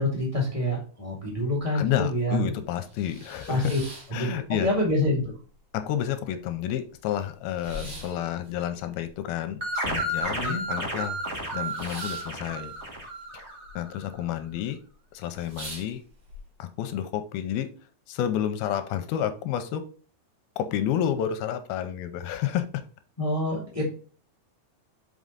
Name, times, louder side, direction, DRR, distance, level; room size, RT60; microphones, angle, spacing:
voice 1, 0.0-2.4 3.5-3.8 4.2-4.3 4.6-5.3 7.7-8.0 10.4-10.6 23.2-23.8, left 1 dB, 30° left, -3 dB, 0.6 m, -26 dB
voice 2, 1.8-3.8 4.1-4.7 5.7-11.2 11.5-12.7 13.3-13.4 13.8-14.8 15.1-16.0 16.6-17.7 18.1-19.9 20.6-22.8, left 10 dB, 80° left, 9 dB, 2.4 m, -30 dB
sound 1, 2.8-4.8 5.1-5.9 6.2-6.3 6.5-10.6 10.9-13.7 14.0-14.5 14.9-15.0 15.3-16.4, equal, 40° right, 2.4 m, -44 dB
sound 2, 9.6-13.9, right 1 dB, 25° right, 1.8 m, -32 dB
6.2 x 5.5 x 3.9 m, 0.40 s
omnidirectional pair, 4.6 m